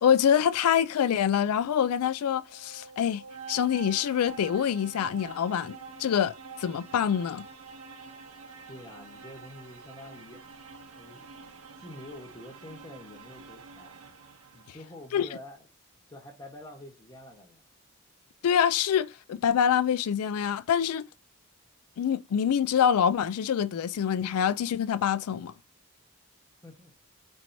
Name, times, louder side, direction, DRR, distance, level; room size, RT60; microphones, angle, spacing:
voice 1, 0.0-3.2 3.5-7.4 15.1-15.3 18.4-21.1 22.0-25.5, left 8 dB, 80° left, 0.3 m, -25 dB
sound 1, 2.1-14.9, right 5 dB, 80° right, 0.8 m, -47 dB
voice 2, 8.7-10.4 10.9-14.0 14.5-15.7 16.1-17.6 26.6-26.9, left 1 dB, 20° left, 1.0 m, -47 dB
4.5 x 4.5 x 2.6 m
head